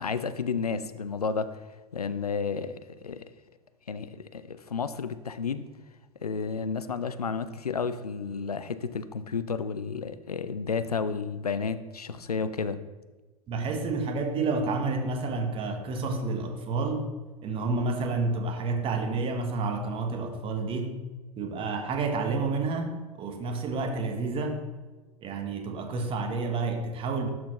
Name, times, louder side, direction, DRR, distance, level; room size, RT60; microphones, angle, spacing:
voice 1, 0.0-1.6 1.9-2.7 3.0-3.3 3.9-5.7 6.2-12.8, left 5 dB, 80° left, 12 dB, 0.5 m, -31 dB
voice 2, 13.5-17.1 17.4-21.0 21.4-24.6 25.2-27.3, right 3 dB, 30° right, 5 dB, 1.1 m, -29 dB
12.0 x 4.1 x 3.0 m, 1.2 s
figure-of-eight pair, 90°, 19 cm